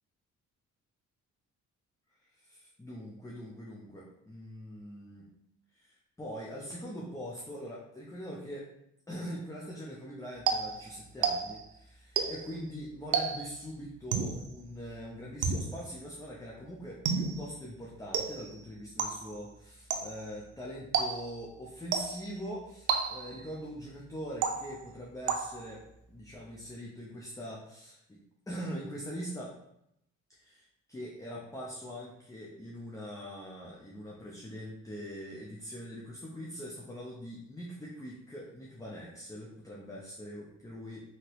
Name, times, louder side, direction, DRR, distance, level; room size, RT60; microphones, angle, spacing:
voice 1, 2.3-5.3 5.7-8.6 9.1-25.8 26.1-28.2 28.5-29.5 30.3-41.0, equal, 10° left, -4 dB, 0.6 m, -43 dB
sound 1, 10.5-11.7 12.2-12.6 13.1-13.6 14.1-14.5 15.4-15.9 17.0-17.5 18.1-18.6 19.0-19.4 19.9-20.3 20.9-21.4 21.9-22.4 22.9-23.4 24.4-24.9 25.3-25.8, right 6 dB, 80° right, 0.5 m, -32 dB
2.9 x 2.9 x 2.9 m, 0.78 s
cardioid pair, 90°, 30 cm